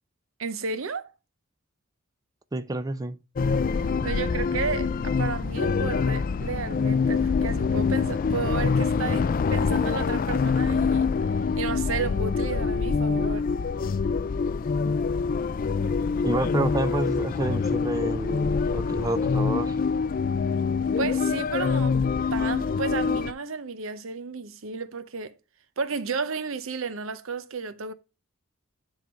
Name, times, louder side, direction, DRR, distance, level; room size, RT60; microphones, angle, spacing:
voice 1, 0.4-1.1 3.7-11.1 11.6-13.5 21.0-22.0 22.3-25.4 25.8-27.9, right 5 dB, 70° right, 0.7 m, -32 dB
voice 2, 2.5-3.2 16.2-19.8, right 2 dB, 15° right, 0.5 m, -29 dB
sound 1, 3.4-23.3, left 5 dB, 40° left, 0.3 m, -25 dB
10.5 x 3.8 x 4.3 m
head